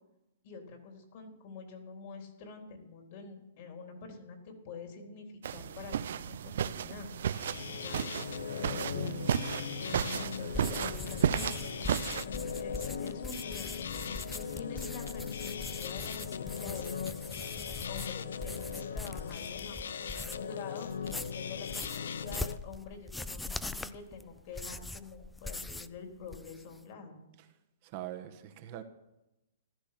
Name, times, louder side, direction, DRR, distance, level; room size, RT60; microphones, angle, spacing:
voice 1, 0.4-7.1 7.7-8.1 10.2-17.0 17.9-27.2, left 5 dB, 40° left, 3.8 m, -46 dB
sound 1, 5.4-12.2, right 9 dB, 65° right, 0.6 m, -34 dB
sound 2, 7.2-22.6, left 7 dB, 75° left, 0.8 m, -39 dB
voice 2, 8.7-9.3 27.4-27.5 27.8-28.8, right 13 dB, 35° right, 1.3 m, -43 dB
sound 3, 10.5-20.5 20.9-26.0 26.2-26.8, left 2 dB, 5° left, 0.4 m, -42 dB
15.0 x 13.5 x 6.0 m
hypercardioid pair, 160°, 0 cm